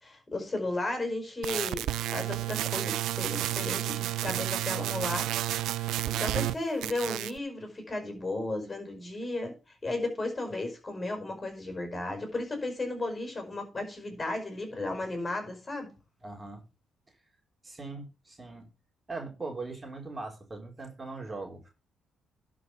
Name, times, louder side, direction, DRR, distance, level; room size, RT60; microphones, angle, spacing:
voice 1, 0.0-9.5 9.8-15.9, left 2 dB, 25° left, 5.0 m, -34 dB
sound 1, 1.4-6.6 6.8-7.4, right 14 dB, 85° right, 0.4 m, -31 dB
voice 2, 16.2-16.6 17.6-18.7 19.1-21.7, right 3 dB, 25° right, 3.6 m, -40 dB
11.5 x 5.2 x 6.0 m
cardioid pair, 90°, 0 cm